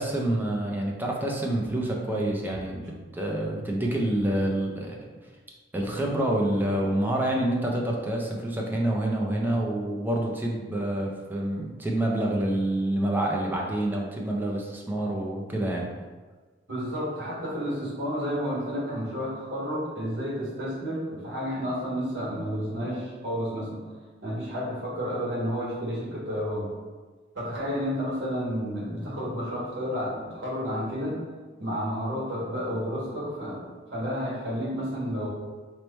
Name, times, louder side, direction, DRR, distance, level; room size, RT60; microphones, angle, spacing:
voice 1, 0.0-2.8 3.1-5.0 5.7-15.9, right 1 dB, 10° right, -2 dB, 0.4 m, -27 dB
voice 2, 16.7-23.8 24.2-26.7 27.3-31.2 31.6-35.3, equal, 80° right, -7 dB, 1.4 m, -31 dB
3.1 x 2.1 x 4.1 m, 1.4 s
head